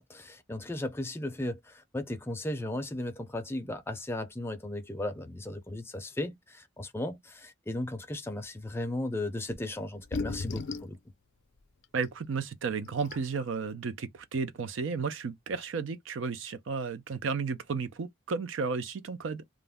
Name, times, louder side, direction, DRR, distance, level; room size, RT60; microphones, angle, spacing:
voice 1, 0.0-11.0, left 1 dB, 10° left, 0.4 m, -36 dB
sound 1, 9.5-9.6 10.0-11.0 12.0-12.1 12.7-12.8 13.0-13.4, left 3 dB, 70° left, 0.5 m, -35 dB
voice 2, 11.9-19.4, right 5 dB, 80° right, 0.4 m, -33 dB
2.4 x 2.0 x 3.4 m
head